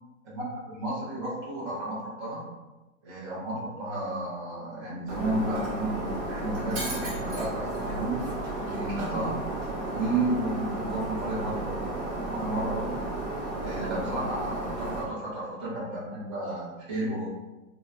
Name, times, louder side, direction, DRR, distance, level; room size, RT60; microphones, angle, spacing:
voice 1, 0.2-2.4 3.0-8.2 8.7-9.4 9.9-13.0 13.6-17.3, right 2 dB, 20° right, -10 dB, 0.4 m, -32 dB
Shatter, 5.1-15.0, right 2 dB, 50° right, 1.0 m, -33 dB
2.8 x 2.1 x 2.3 m, 1.1 s
hypercardioid pair, 170°, 41 cm